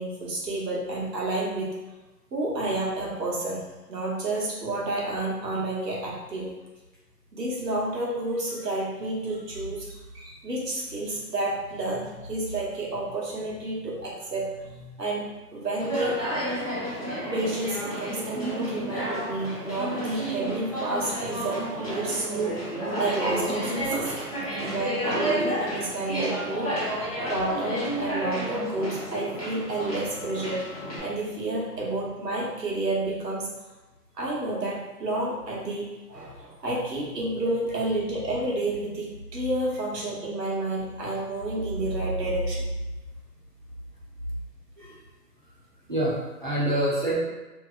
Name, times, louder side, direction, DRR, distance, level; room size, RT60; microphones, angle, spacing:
voice 1, 0.0-1.7 2.3-6.5 7.3-16.2 17.3-22.6 23.0-26.7 27.3-30.7 31.0-33.5 34.2-42.6, right 2 dB, 85° right, -4 dB, 1.0 m, -30 dB
Conversation, 15.8-31.0, right 1 dB, 25° left, 0.5 m, -31 dB
voice 2, 45.9-47.2, right 1 dB, 35° right, -8 dB, 0.4 m, -26 dB
2.7 x 2.0 x 2.4 m, 1.1 s
figure-of-eight pair, 140°, 48 cm